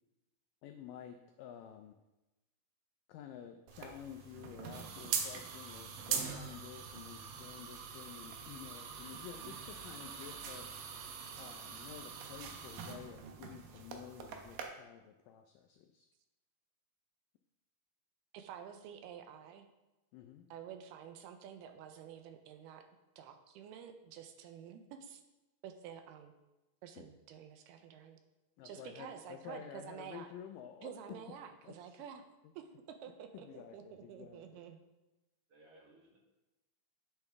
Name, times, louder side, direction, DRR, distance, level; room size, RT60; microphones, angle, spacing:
voice 1, 0.6-2.0 3.1-10.7 11.4-16.1 20.1-20.5 27.0-27.1 28.6-31.4 31.6-31.7 33.3-34.6, left 9 dB, 85° left, 6 dB, 1.9 m, -51 dB
sound 1, 3.7-14.6, right 7 dB, 70° right, 2.4 m, -43 dB
voice 2, 18.3-19.7 20.5-22.8 23.2-25.2 25.6-26.3 26.8-28.2 28.6-30.3 30.8-32.2 32.6-34.8, right 8 dB, 90° right, 6 dB, 2.8 m, -50 dB
voice 3, 28.6-29.3 35.5-36.2, right 2 dB, 50° right, -2 dB, 1.9 m, -62 dB
9.0 x 8.8 x 3.6 m, 1.0 s
omnidirectional pair, 4.5 m